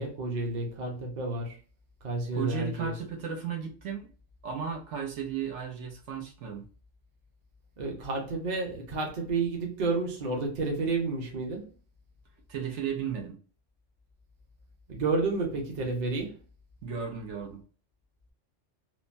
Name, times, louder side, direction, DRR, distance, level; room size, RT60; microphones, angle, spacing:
voice 1, 0.0-1.6 2.0-2.9 7.8-11.7 14.9-16.4, right 3 dB, 40° right, 0.8 m, -30 dB
voice 2, 2.3-4.1 4.4-6.7 12.5-13.3 16.8-17.6, right 7 dB, 75° right, 1.1 m, -35 dB
3.2 x 2.1 x 2.5 m
omnidirectional pair, 1.3 m